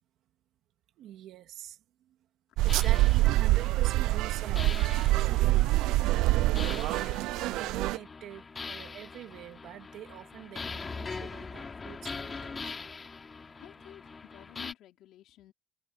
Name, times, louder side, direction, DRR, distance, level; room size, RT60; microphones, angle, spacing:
voice 1, 1.0-2.2 2.6-5.7 6.2-7.1 7.5-12.7, right 12 dB, 55° right, 2.5 m, -45 dB
sound 1, 2.6-8.0, right 18 dB, 80° right, 0.4 m, -25 dB
sound 2, 2.7-14.7, left 4 dB, 20° left, 3.1 m, -42 dB
voice 2, 13.5-15.5, left 13 dB, 60° left, 4.2 m, -51 dB
cardioid pair, 175°, 0 cm